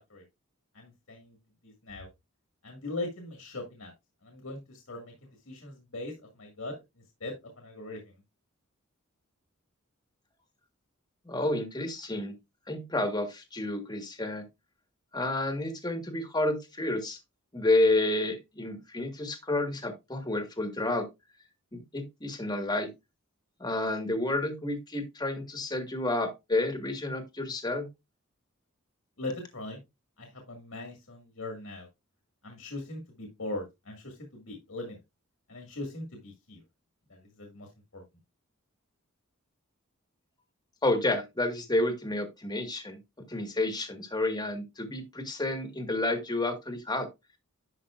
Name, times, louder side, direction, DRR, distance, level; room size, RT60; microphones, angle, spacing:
voice 1, 0.7-1.4 1.6-2.1 2.6-3.9 4.2-5.1 5.5-6.7 7.2-8.2 29.2-29.8 30.2-31.9 32.4-35.0 35.5-36.6 37.1-38.0, left 2 dB, 70° left, 2.0 m, -40 dB
voice 2, 11.2-12.3 12.7-14.4 15.1-17.2 17.5-21.1 21.7-22.9 23.6-27.9 40.8-43.0 43.3-47.1, left 2 dB, 20° left, 1.6 m, -30 dB
10.5 x 5.7 x 2.5 m
head